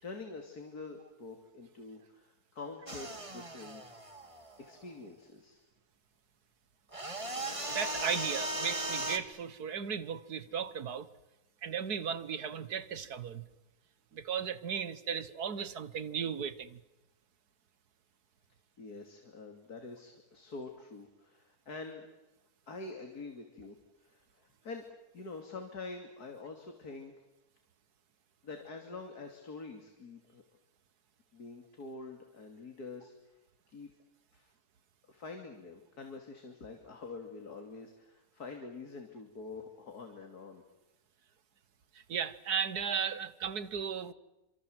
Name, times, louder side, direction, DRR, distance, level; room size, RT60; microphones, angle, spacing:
voice 1, 0.0-3.8 4.6-5.6 18.8-22.1 22.7-24.2 24.6-24.8 25.1-27.1 28.4-30.4 31.3-33.1 33.7-33.9 34.3-34.5 35.1-40.6, left 3 dB, 80° left, 3.4 m, -46 dB
sound 1, 2.9-4.9 6.9-9.2, right 1 dB, 20° right, 2.2 m, -37 dB
voice 2, 7.7-11.1 11.6-13.4 14.1-16.8 42.1-44.1, right 7 dB, 85° right, 1.9 m, -36 dB
28.0 x 26.5 x 8.0 m
omnidirectional pair, 1.6 m